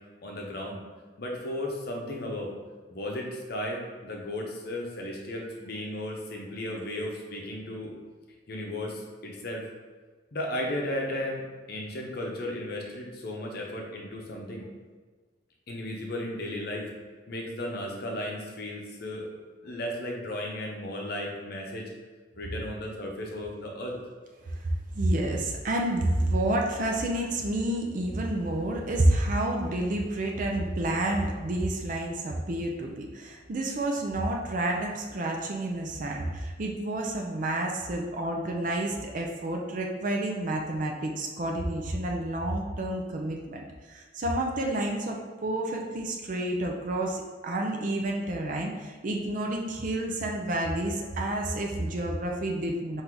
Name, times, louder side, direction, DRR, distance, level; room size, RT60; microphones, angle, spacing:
voice 1, 0.2-0.8 1.2-2.5 2.9-7.9 8.5-9.6 10.3-14.7 15.7-16.9 17.3-19.3 19.6-21.9 22.4-23.9, left 1 dB, 55° left, 0 dB, 0.8 m, -35 dB
voice 2, 24.6-53.0, right 1 dB, 45° right, 1 dB, 0.5 m, -29 dB
3.8 x 2.7 x 4.5 m, 1.4 s
head